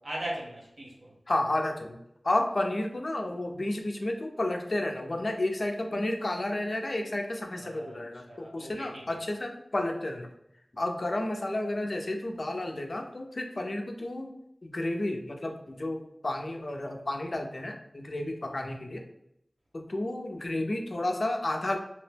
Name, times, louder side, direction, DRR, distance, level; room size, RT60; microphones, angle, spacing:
voice 1, 0.0-1.1 7.5-8.0 8.3-9.0, right 1 dB, 80° right, -3 dB, 0.9 m, -39 dB
voice 2, 1.3-2.0 2.2-10.3 10.7-14.3 14.6-19.0 19.7-21.8, left 1 dB, 55° left, 3 dB, 0.4 m, -31 dB
2.8 x 2.1 x 3.3 m, 0.77 s
wide cardioid pair, 55°, 0 cm